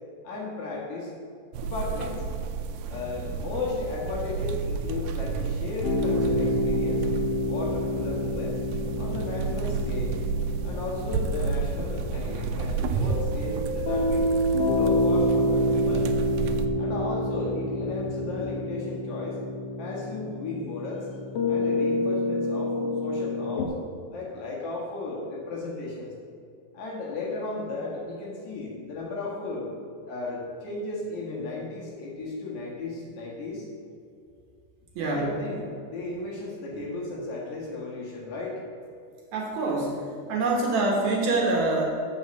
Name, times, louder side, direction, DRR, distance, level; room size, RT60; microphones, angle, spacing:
voice 1, 0.2-1.1 1.6-2.3 2.9-7.0 7.5-8.6 9.0-10.2 10.6-14.4 14.7-16.1 16.7-19.4 19.8-21.1 21.5-23.7 24.1-26.1 26.7-29.7 30.0-33.7 35.0-38.6, left 3 dB, 60° left, -3 dB, 2.8 m, -35 dB
sound 1, 1.5-16.7, right 5 dB, 85° right, 2.3 m, -31 dB
sound 2, 2.9-18.5, left 4 dB, 25° right, 2.5 m, -42 dB
sound 3, 5.8-23.7, left 1 dB, 80° left, 1.3 m, -28 dB
voice 2, 35.0-35.3 39.3-41.8, right 2 dB, 65° right, -1 dB, 2.1 m, -25 dB
7.5 x 5.5 x 7.4 m, 2.4 s
omnidirectional pair, 3.9 m